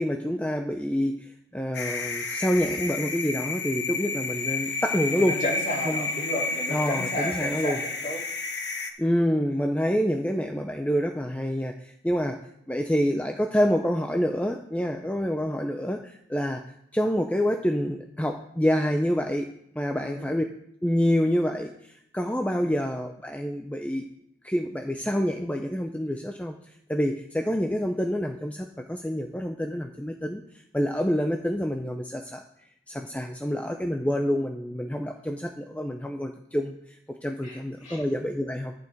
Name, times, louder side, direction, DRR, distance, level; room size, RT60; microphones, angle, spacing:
voice 1, 0.0-5.4 5.9-6.1 6.7-7.8 9.0-12.4 12.7-16.6 16.9-20.5 20.8-21.7 22.1-24.1 24.4-26.6 26.9-30.4 30.7-32.4 32.9-37.0 37.2-38.7, equal, 10° left, 3 dB, 0.5 m, -27 dB
sound 1, 1.7-8.9, left 4 dB, 90° left, 1.2 m, -31 dB
voice 2, 5.1-8.2 19.9-20.3 22.6-22.7 37.4-38.0, left 1 dB, 45° left, -2 dB, 2.6 m, -33 dB
11.0 x 8.8 x 4.5 m, 0.74 s
head